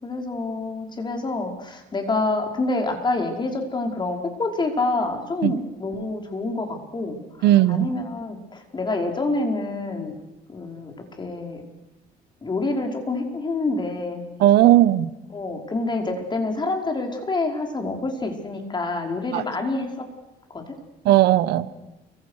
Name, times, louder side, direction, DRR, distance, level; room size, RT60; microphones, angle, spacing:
voice 1, 0.0-10.1 10.5-10.9 11.2-11.6 12.4-14.2 15.3-20.1 20.5-20.6, left 2 dB, 25° left, 3 dB, 5.3 m, -27 dB
voice 2, 7.4-7.9 14.4-15.1 19.3-19.4 21.0-21.7, right 14 dB, 80° right, 15 dB, 1.4 m, -16 dB
29.0 x 25.0 x 6.7 m, 0.99 s
cardioid pair, 110°, 17 cm